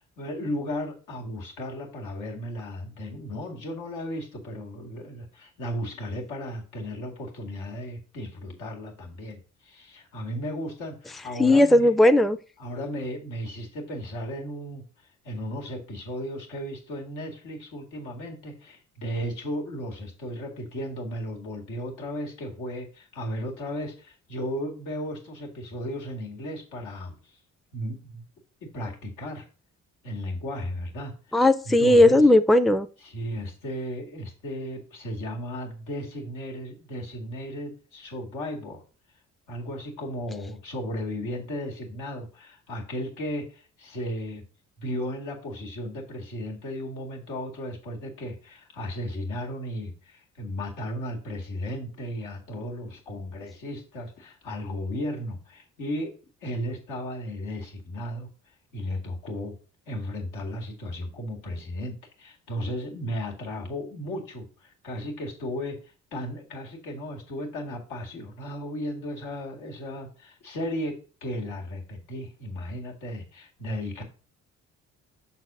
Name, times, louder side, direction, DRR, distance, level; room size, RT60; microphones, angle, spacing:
voice 1, 0.0-11.9 12.6-14.8 15.2-27.3 27.7-28.2 28.6-29.5 30.0-31.1 31.6-32.3 33.0-38.8 39.5-44.4 44.8-56.1 56.4-58.3 58.7-59.6 59.9-65.8 66.1-74.0, equal, 90° left, -1 dB, 2.1 m, -35 dB
voice 2, 11.4-12.4 31.3-32.9, left 1 dB, ahead, 11 dB, 0.4 m, -17 dB
6.0 x 4.1 x 6.0 m, 0.36 s
cardioid pair, 90°, 30 cm